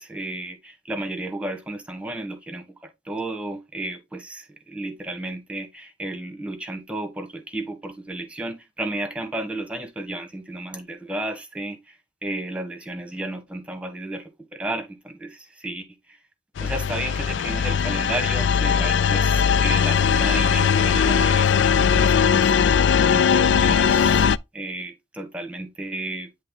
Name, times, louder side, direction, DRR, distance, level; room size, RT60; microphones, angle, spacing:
voice 1, 0.0-16.2 16.6-22.8 23.1-24.3 24.5-26.3, right 1 dB, 5° right, 1.4 m, -33 dB
sound 1, 16.6-24.4, left 7 dB, 75° left, 0.4 m, -19 dB
10.0 x 3.4 x 3.9 m
head